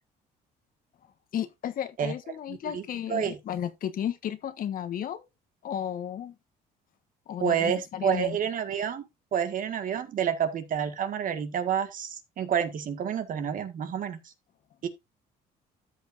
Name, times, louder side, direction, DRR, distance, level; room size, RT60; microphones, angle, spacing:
voice 1, 1.3-5.3 5.6-6.3 7.3-8.4, left 10 dB, 55° left, 1.3 m, -33 dB
voice 2, 2.5-2.8 3.1-3.4 7.4-9.1 9.3-14.2 14.8-14.9, right 8 dB, 55° right, 1.8 m, -29 dB
13.0 x 7.1 x 2.6 m
cardioid pair, 110°, 17 cm